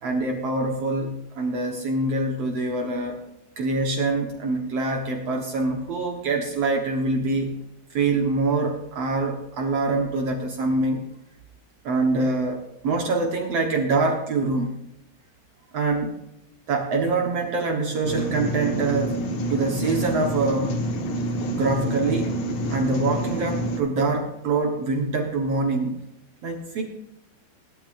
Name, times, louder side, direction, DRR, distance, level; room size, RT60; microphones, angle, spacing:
voice 1, 0.0-3.2 3.6-7.6 7.9-11.0 11.8-14.7 15.7-16.2 16.7-20.8 21.5-22.3 22.7-26.0 26.4-26.8, right 3 dB, 75° right, 2 dB, 1.4 m, -25 dB
sound 1, 18.0-23.8, equal, 60° left, 2.9 m, -28 dB
20.0 x 12.0 x 2.6 m, 0.85 s
omnidirectional pair, 4.9 m